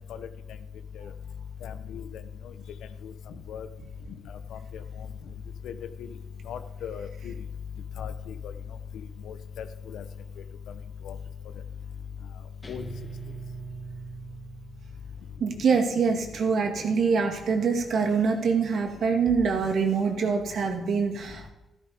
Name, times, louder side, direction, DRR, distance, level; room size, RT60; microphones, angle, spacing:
voice 1, 1.6-2.0 3.5-3.7 4.5-4.6 5.6-5.7 6.5-7.3 8.0-8.1 9.3-9.4 9.9-10.0 11.1-11.2 12.7-12.8, left 8 dB, 85° left, 11 dB, 1.0 m, -36 dB
Guitar, 12.6-15.2, right 4 dB, 20° left, 2.5 m, -41 dB
voice 2, 15.4-21.5, right 5 dB, 65° right, 4 dB, 2.3 m, -25 dB
14.0 x 12.5 x 5.2 m, 1.0 s
cardioid pair, 90°, 0 cm